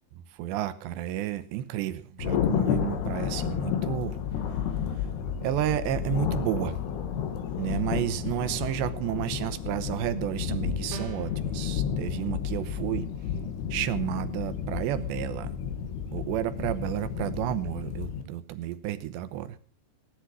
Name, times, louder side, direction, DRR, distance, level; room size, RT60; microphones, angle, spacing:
voice 1, 0.3-4.2 4.9-5.1 5.4-6.8 7.6-13.1 13.7-15.5 16.1-19.6, right 13 dB, 80° right, 12 dB, 3.2 m, -31 dB
Thunder, 2.2-18.2, left 8 dB, 70° left, 3.6 m, -31 dB
sound 1, 10.9-11.4, right 5 dB, 60° right, 0.7 m, -39 dB
17.5 x 11.0 x 6.1 m, 0.42 s
omnidirectional pair, 5.0 m